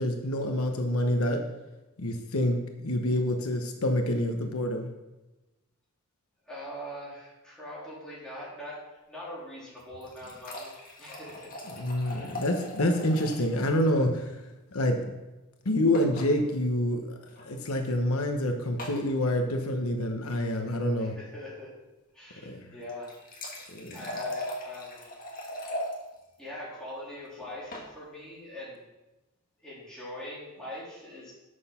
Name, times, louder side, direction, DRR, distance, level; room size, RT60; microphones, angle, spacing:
voice 1, 0.0-1.4 2.0-4.9 11.7-14.3 14.7-15.0 15.6-17.0 17.4-21.1 22.4-22.6 23.7-24.0, left 1 dB, 85° left, 4 dB, 1.0 m, -27 dB
voice 2, 6.5-10.7 11.0-11.4 12.1-12.3 13.4-13.5 21.0-21.7 22.1-23.1 23.9-25.0 26.4-28.8 29.6-31.3, left 1 dB, 5° left, -8 dB, 3.4 m, -42 dB
sound 1, 9.8-13.5 13.8-13.9 14.1-14.2 15.9-16.3 17.3-17.4 18.8-19.1 22.8-25.9 27.4-27.9, equal, 40° left, 1.7 m, -39 dB
7.6 x 6.4 x 5.7 m, 1.0 s
head